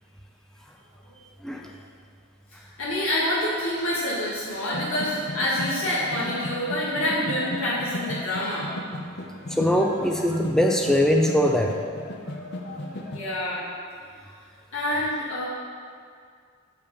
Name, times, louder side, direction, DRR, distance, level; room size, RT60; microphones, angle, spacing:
voice 1, 2.5-8.7 13.1-13.7 14.7-15.5, left 1 dB, 75° left, -8 dB, 1.7 m, -27 dB
sound 1, 4.7-13.2, left 1 dB, 50° left, 0.7 m, -35 dB
voice 2, 9.5-11.8, equal, ahead, 1 dB, 0.4 m, -21 dB
7.1 x 5.4 x 5.3 m, 2.1 s
head